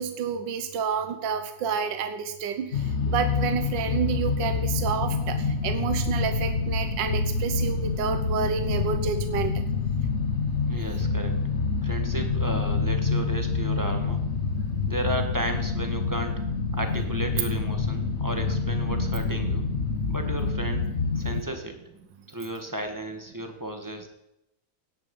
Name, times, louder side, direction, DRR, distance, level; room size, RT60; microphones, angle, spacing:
voice 1, 0.0-5.4 5.6-9.5, right 7 dB, 70° right, 7 dB, 1.7 m, -29 dB
sound 1, 2.7-21.4, left 4 dB, 45° left, 1.2 m, -27 dB
voice 2, 10.7-11.4 11.8-14.2 14.9-16.3 16.7-19.7 20.1-20.9 21.1-21.8 22.3-24.1, right 1 dB, 10° right, 4 dB, 1.6 m, -33 dB
17.5 x 10.0 x 5.5 m, 0.85 s
omnidirectional pair, 2.1 m